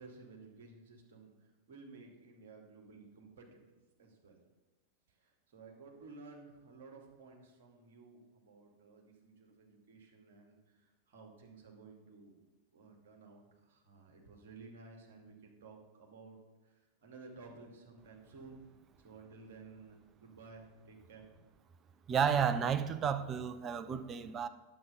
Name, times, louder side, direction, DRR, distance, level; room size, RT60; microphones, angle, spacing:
voice 1, 0.0-4.4 5.1-12.4 12.7-16.4 16.6-21.3, right 4 dB, 55° right, 2.5 m, -55 dB
voice 2, 22.1-24.5, right 7 dB, 25° right, 0.6 m, -32 dB
9.8 x 7.8 x 5.3 m
figure-of-eight pair, 90°, 0 cm